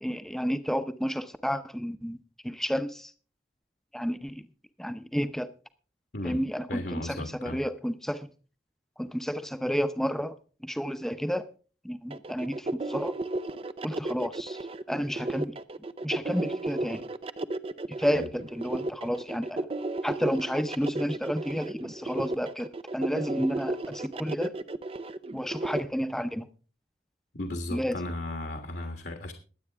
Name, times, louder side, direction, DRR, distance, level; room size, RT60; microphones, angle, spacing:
voice 1, 0.0-2.2 2.4-3.1 3.9-4.5 4.8-5.5 6.2-8.3 9.0-10.4 10.6-11.5 11.8-13.2 13.8-14.6 14.9-15.5 16.0-17.0 17.9-19.7 20.0-24.5 25.3-26.5 27.7-28.0, equal, ahead, 0.7 m, -31 dB
voice 2, 6.1-6.4 6.7-7.6 18.1-18.3 27.4-29.3, left 1 dB, 65° left, 1.6 m, -35 dB
sound 1, 12.1-25.8, right 2 dB, 30° right, 0.5 m, -34 dB
22.0 x 8.4 x 3.5 m
head